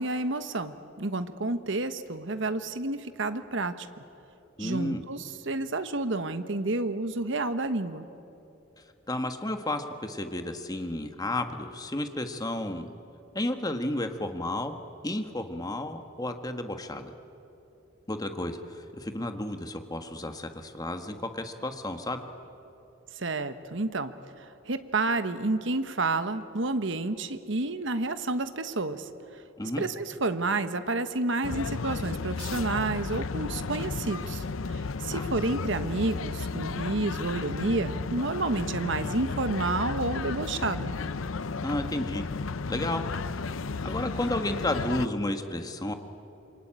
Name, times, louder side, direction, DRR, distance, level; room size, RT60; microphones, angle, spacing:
voice 1, 0.0-3.9 4.6-8.1 23.2-24.1 24.7-29.1 29.8-34.4 34.7-40.9, right 2 dB, 65° right, 10 dB, 1.3 m, -30 dB
voice 2, 4.6-5.0 9.1-12.9 13.3-14.8 15.0-17.1 18.1-22.2 29.6-29.8 35.1-35.3 41.6-42.3 42.7-43.0 43.8-45.9, left 1 dB, 20° left, 6 dB, 1.6 m, -32 dB
sound 1, 31.4-45.1, left 4 dB, 85° left, 0.7 m, -33 dB
27.5 x 24.0 x 9.0 m, 2.9 s
head